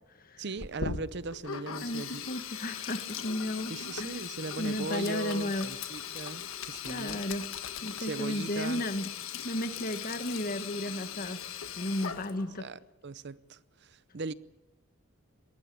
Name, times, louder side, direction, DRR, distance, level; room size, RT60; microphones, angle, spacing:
voice 1, 0.4-2.2 3.7-7.2 8.0-8.8 12.6-14.3, right 3 dB, 55° right, 0.7 m, -39 dB
Sink (filling or washing), 0.6-12.6, left 7 dB, 75° left, 1.4 m, -39 dB
voice 2, 1.8-3.7 4.0-4.2 4.6-5.7 6.8-7.4 7.8-9.1 9.4-11.4 11.8-12.7, left 1 dB, 40° left, 1.7 m, -34 dB
22.0 x 18.5 x 8.6 m
head